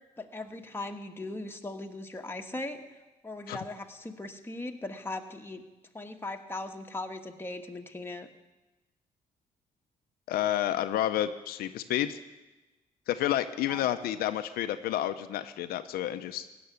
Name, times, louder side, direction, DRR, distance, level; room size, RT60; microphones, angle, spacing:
voice 1, 0.2-2.8 3.2-5.6 5.9-8.3 13.7-13.9, left 2 dB, 15° left, 3 dB, 1.4 m, -39 dB
voice 2, 10.3-12.2 13.1-16.5, left 12 dB, 90° left, 9 dB, 0.7 m, -30 dB
16.0 x 6.9 x 9.5 m, 1.1 s
cardioid pair, 80°, 15 cm